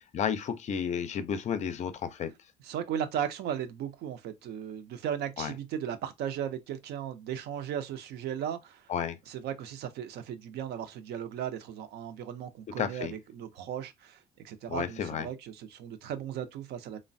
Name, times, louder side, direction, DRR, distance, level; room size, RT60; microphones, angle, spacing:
voice 1, 0.1-2.3 5.4-5.5 8.9-9.2 12.7-13.2 14.7-15.3, left 7 dB, 45° left, 0.5 m, -32 dB
voice 2, 2.6-8.9 9.3-17.0, right 9 dB, 75° right, 0.5 m, -36 dB
3.1 x 2.1 x 2.5 m
cardioid pair, 110°, 17 cm